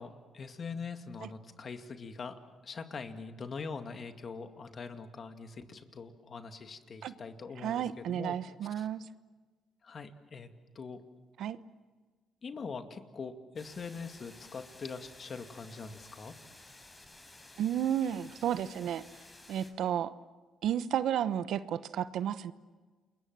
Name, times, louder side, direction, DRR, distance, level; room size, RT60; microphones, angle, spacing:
voice 1, 0.0-8.4 8.7-8.9 9.8-11.0 12.4-16.4, left 5 dB, 45° left, 7 dB, 2.3 m, -43 dB
voice 2, 7.6-9.1 11.4-11.6 17.6-19.0 19.5-20.1 20.6-22.5, right 10 dB, 75° right, 14 dB, 0.9 m, -32 dB
sound 1, 13.6-19.7, left 2 dB, 20° left, 5.5 m, -54 dB
29.0 x 22.0 x 7.6 m, 1.4 s
cardioid pair, 90°, 0 cm